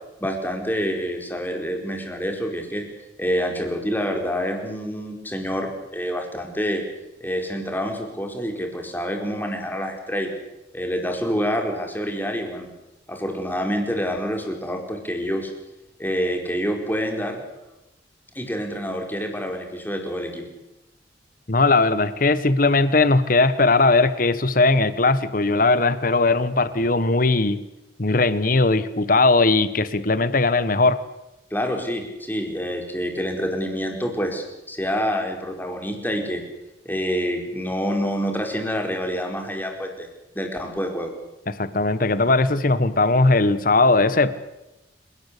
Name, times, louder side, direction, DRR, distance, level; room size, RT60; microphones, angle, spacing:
voice 1, 0.2-2.8 3.2-6.8 7.2-10.3 10.7-12.7 13.1-15.5 16.0-17.4 18.3-20.5 31.5-36.4 36.8-40.1 40.3-41.1, equal, 10° left, 3 dB, 4.7 m, -27 dB
voice 2, 21.5-27.6 28.0-31.0 41.5-44.3, left 3 dB, 50° left, 14 dB, 1.3 m, -19 dB
29.0 x 17.5 x 8.4 m, 0.96 s
head